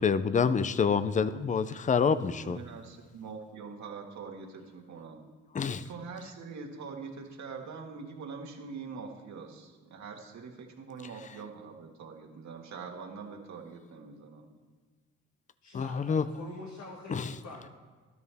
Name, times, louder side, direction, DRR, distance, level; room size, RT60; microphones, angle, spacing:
voice 1, 0.0-2.6 5.5-5.8 15.7-16.2 17.1-17.3, left 6 dB, 25° left, 14 dB, 0.5 m, -27 dB
voice 2, 2.3-5.3 5.6-14.5, right 5 dB, 65° right, 1 dB, 1.9 m, -44 dB
voice 3, 15.6-17.7, left 3 dB, 65° left, 0 dB, 1.5 m, -45 dB
12.5 x 10.5 x 3.5 m, 1.4 s
cardioid pair, 90°, 30 cm